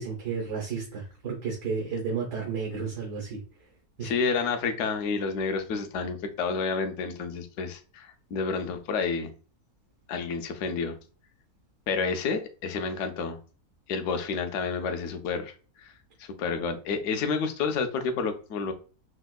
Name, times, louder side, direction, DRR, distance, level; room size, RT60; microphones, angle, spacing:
voice 1, 0.0-3.4 4.0-4.1, right 5 dB, 90° right, 1.5 m, -32 dB
voice 2, 4.0-9.3 10.1-11.0 11.9-13.4 13.9-15.5 15.8-15.9 16.2-18.7, left 5 dB, 70° left, 0.8 m, -29 dB
4.3 x 2.2 x 2.2 m
omnidirectional pair, 1.6 m